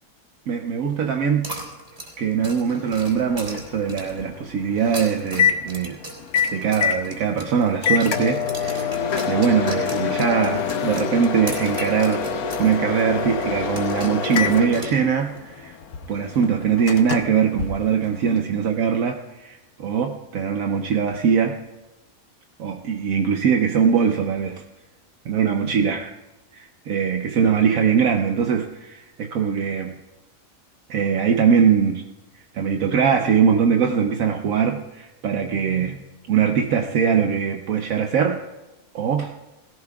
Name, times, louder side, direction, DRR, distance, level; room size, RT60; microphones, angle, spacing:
voice 1, 0.5-1.5 2.2-6.0 6.5-8.9 9.3-12.2 12.6-15.3 16.1-21.6 22.6-24.6 25.3-26.1 26.5-30.0 30.9-32.0 32.5-36.0 36.3-38.4 38.9-39.3, right 7 dB, 70° right, 3 dB, 1.2 m, -21 dB
sound 1, 1.4-4.3 4.8-7.7 8.0-12.7 13.0-13.1 13.8-15.4, right 1 dB, 25° right, 3.9 m, -37 dB
Microwave oven, 2.7-18.4, left 7 dB, 90° left, 1.3 m, -27 dB
20.5 x 17.5 x 2.3 m, 1.1 s
omnidirectional pair, 1.5 m